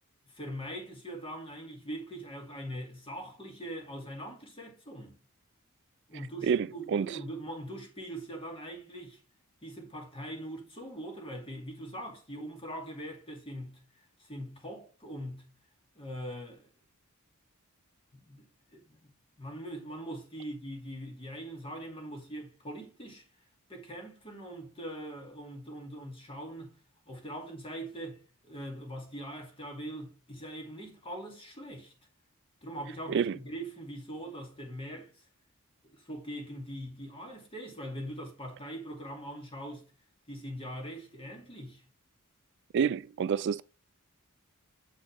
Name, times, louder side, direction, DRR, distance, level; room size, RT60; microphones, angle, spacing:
voice 1, 0.3-5.2 6.1-9.2 9.6-15.5 16.0-16.7 18.1-19.1 19.4-23.3 23.7-26.8 27.1-31.9 32.6-35.2 35.8-39.9 40.3-41.8, right 1 dB, 25° left, 2.5 m, -42 dB
voice 2, 6.4-7.2 33.1-33.4 42.7-43.6, right 7 dB, 55° right, 0.3 m, -28 dB
7.4 x 6.3 x 3.5 m
head